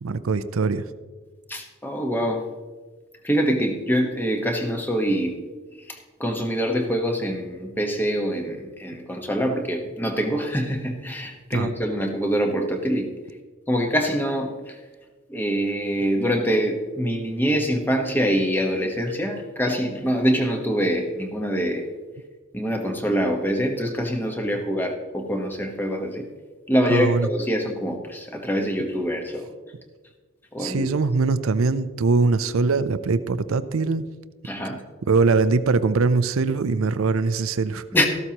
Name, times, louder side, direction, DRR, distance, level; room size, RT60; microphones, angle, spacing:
voice 1, 0.0-0.8 11.5-11.7 26.9-27.3 30.6-34.1 35.0-37.8, right 4 dB, 85° right, 13 dB, 0.5 m, -22 dB
voice 2, 1.5-2.4 3.2-5.4 5.9-13.1 13.7-14.8 15.3-21.9 22.5-26.3 26.7-29.5 30.5-30.9 34.4-34.8 37.9-38.1, equal, 10° left, 3 dB, 1.1 m, -24 dB
14.0 x 12.5 x 2.9 m, 1.3 s
head